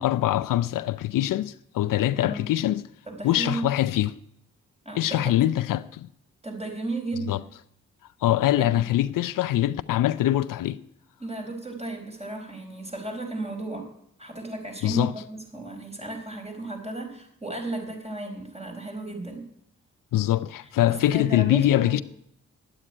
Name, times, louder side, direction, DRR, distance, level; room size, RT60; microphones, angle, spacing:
voice 1, 0.0-2.8 3.2-4.1 5.0-6.1 7.3-7.4 8.2-10.8 14.8-15.1 20.1-22.0, left 13 dB, 80° left, 0.5 m, -23 dB
voice 2, 2.1-2.4 3.1-3.7 4.8-5.4 6.4-7.4 8.6-8.9 11.2-13.9 14.2-19.4 20.9-22.0, right 2 dB, 20° right, 4.7 m, -34 dB
9.8 x 8.9 x 9.9 m
supercardioid pair, 45°, 33 cm